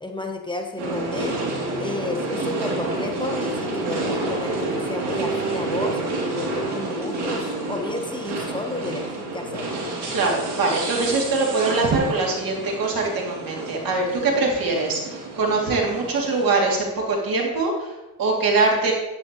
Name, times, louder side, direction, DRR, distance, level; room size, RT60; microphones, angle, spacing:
voice 1, 0.0-1.4 1.8-6.0 6.4-9.7, left 2 dB, 10° left, 2 dB, 1.1 m, -31 dB
sound 1, 0.8-16.5, right 2 dB, 85° right, 2.9 m, -29 dB
voice 2, 10.1-18.9, right 3 dB, 65° right, -1 dB, 2.7 m, -23 dB
10.5 x 9.1 x 3.1 m, 1.1 s
cardioid pair, 80°, 38 cm